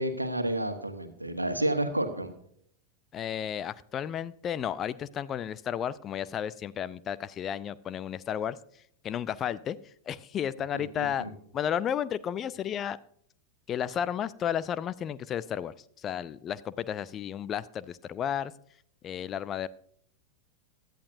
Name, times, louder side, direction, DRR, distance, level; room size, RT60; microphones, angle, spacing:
voice 1, 0.0-2.3 10.7-11.3, right 1 dB, 85° right, 8 dB, 1.4 m, -30 dB
voice 2, 3.1-11.3 11.5-13.0 13.7-18.5 19.0-19.7, left 9 dB, 30° left, 17 dB, 0.4 m, -33 dB
17.0 x 11.5 x 2.6 m, 0.65 s
figure-of-eight pair, 90°, 0 cm